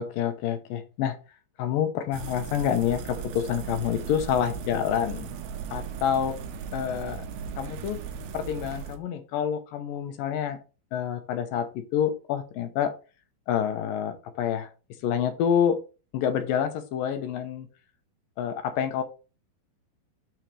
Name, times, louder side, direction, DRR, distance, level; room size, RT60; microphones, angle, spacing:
voice 1, 0.0-1.2 1.6-5.3 5.7-6.4 6.7-7.2 7.6-8.0 8.3-10.6 10.9-12.9 13.5-14.7 15.0-15.8 16.1-17.7 18.4-19.0, left 9 dB, 75° left, 7 dB, 2.4 m, -27 dB
sound 1, 2.1-9.0, right 6 dB, 85° right, 2.8 m, -37 dB
7.2 x 6.4 x 3.3 m, 0.32 s
omnidirectional pair, 4.4 m